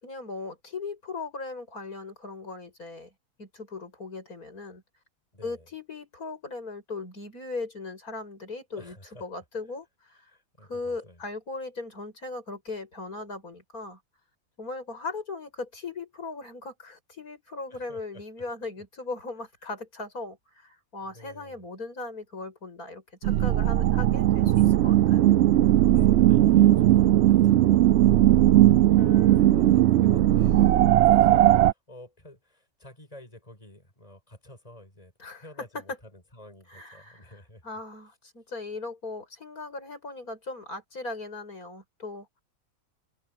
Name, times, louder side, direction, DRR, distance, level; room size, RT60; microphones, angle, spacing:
voice 1, 0.0-3.1 3.4-4.8 5.4-9.9 10.6-14.0 14.6-25.3 29.0-29.5 35.2-35.4 35.7-35.8 36.7-37.2 37.6-42.4, left 3 dB, 85° left, 7.8 m, -38 dB
voice 2, 5.3-5.7 8.7-9.3 10.1-11.2 17.7-18.4 21.0-21.6 24.4-25.1 25.8-35.1 35.4-37.6, left 1 dB, 25° left, 7.8 m, -51 dB
sound 1, 23.2-31.7, right 13 dB, 65° right, 0.7 m, -18 dB
open air
omnidirectional pair, 1.5 m